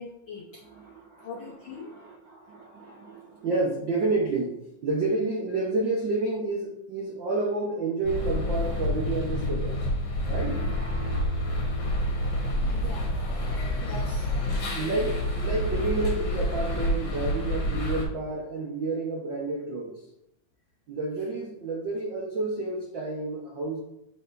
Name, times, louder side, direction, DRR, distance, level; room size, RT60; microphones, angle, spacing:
voice 1, 0.0-0.6 1.2-1.9 12.6-15.0, left 4 dB, 80° left, -3 dB, 1.1 m, -43 dB
voice 2, 0.6-9.8 10.2-10.7 14.7-20.1 20.9-23.8, right 3 dB, 75° right, -1 dB, 1.0 m, -30 dB
sound 1, 8.0-18.0, left 1 dB, 60° left, 2.4 m, -28 dB
8.4 x 5.5 x 2.6 m, 0.80 s
omnidirectional pair, 3.5 m